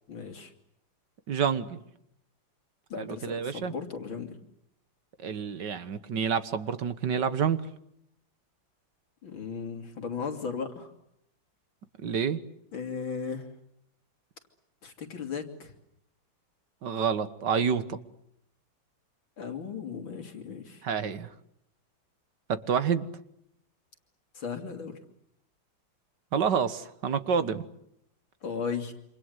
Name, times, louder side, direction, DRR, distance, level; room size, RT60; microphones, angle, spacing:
voice 1, 0.1-0.5 2.9-4.4 9.2-10.9 12.7-13.5 14.8-15.7 19.4-20.8 24.3-25.0 28.4-28.9, left 6 dB, 85° left, 4 dB, 3.7 m, -36 dB
voice 2, 1.3-1.8 3.0-3.7 5.2-7.6 12.0-12.4 16.8-18.0 20.8-21.3 22.5-23.1 26.3-27.6, right 7 dB, 65° right, 12 dB, 1.9 m, -28 dB
28.0 x 26.5 x 8.0 m, 0.77 s
omnidirectional pair, 2.1 m